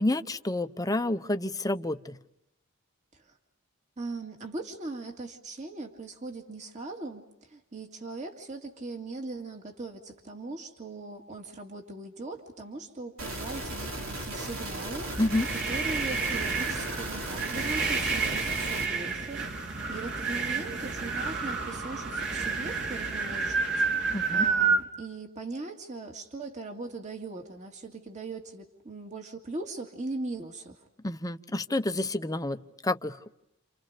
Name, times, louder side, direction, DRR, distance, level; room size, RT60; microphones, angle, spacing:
voice 1, 0.0-2.2 15.2-15.5 24.1-24.5 31.0-33.3, left 1 dB, 15° left, 9 dB, 0.8 m, -29 dB
voice 2, 4.0-15.1 15.7-19.5 19.9-23.6 23.9-30.8, right 3 dB, 35° right, 3 dB, 2.3 m, -39 dB
sound 1, 13.2-18.9, right 1 dB, 80° right, 3.7 m, -36 dB
sound 2, 15.0-24.8, right 4 dB, 60° right, 3.9 m, -30 dB
29.5 x 29.0 x 5.1 m, 0.84 s
head